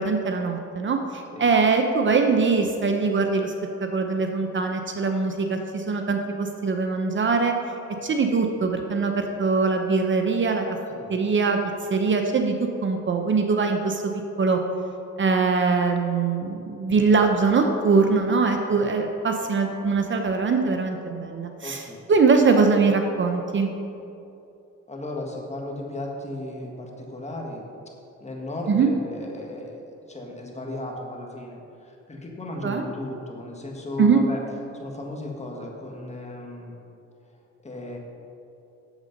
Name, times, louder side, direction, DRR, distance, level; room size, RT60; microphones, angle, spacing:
voice 1, 0.0-3.5 3.8-7.5 8.0-10.7 11.1-11.6 11.9-14.1 14.4-14.6 15.2-23.7 28.7-28.9 32.6-32.8 34.0-34.2, right 4 dB, 40° right, 4 dB, 0.8 m, -22 dB
voice 2, 21.6-22.0 24.9-27.6 28.2-34.4 34.7-36.7 37.6-38.0, left 1 dB, 20° left, 0 dB, 1.7 m, -35 dB
8.2 x 7.4 x 5.3 m, 2.7 s
cardioid pair, 90°, 30 cm